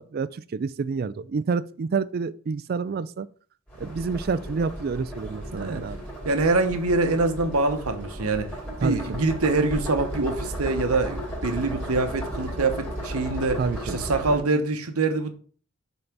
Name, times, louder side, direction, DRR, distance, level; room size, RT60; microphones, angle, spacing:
voice 1, 0.0-3.3 3.8-6.0 8.8-9.0 13.6-14.0, right 5 dB, 45° right, 0.3 m, -28 dB
sound 1, 3.7-14.4, equal, 10° left, 2.5 m, -34 dB
voice 2, 5.5-5.8 6.2-8.5 8.8-13.6 13.9-15.3, right 3 dB, 80° right, 0.9 m, -24 dB
5.5 x 4.0 x 5.8 m
head